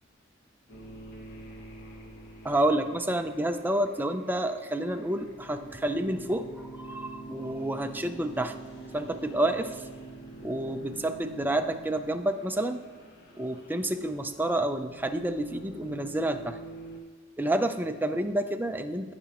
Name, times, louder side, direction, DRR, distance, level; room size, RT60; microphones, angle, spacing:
sound 1, 0.7-17.0, right 2 dB, 55° left, 1.2 m, -46 dB
voice 1, 2.4-6.5 6.8-8.5 8.9-9.8 10.4-12.8 13.4-16.6 17.4-19.1, right 1 dB, 10° right, 7 dB, 0.5 m, -29 dB
17.0 x 5.9 x 3.0 m, 1.3 s
head